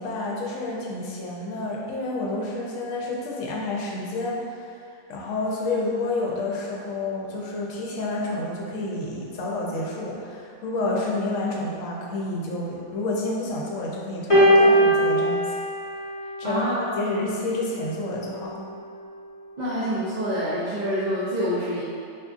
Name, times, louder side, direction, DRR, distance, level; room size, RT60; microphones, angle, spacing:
voice 1, 0.0-4.8 5.1-15.6 16.4-18.7, left 2 dB, 70° left, -3 dB, 1.0 m, -29 dB
sound 1, 14.3-16.8 17.8-18.0, equal, 25° left, 1.0 m, -20 dB
voice 2, 16.4-16.8 19.6-21.8, equal, 50° right, -11 dB, 0.5 m, -26 dB
4.3 x 2.5 x 2.4 m, 2.4 s
omnidirectional pair, 1.4 m